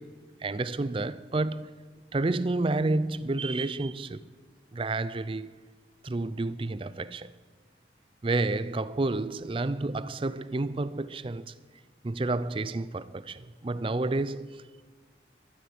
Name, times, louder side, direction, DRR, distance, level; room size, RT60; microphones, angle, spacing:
voice 1, 0.4-1.8 2.1-4.3 4.7-5.6 6.0-7.3 8.2-11.5 12.0-14.8, right 2 dB, 30° right, 0.4 m, -30 dB
14.0 x 13.0 x 8.0 m
head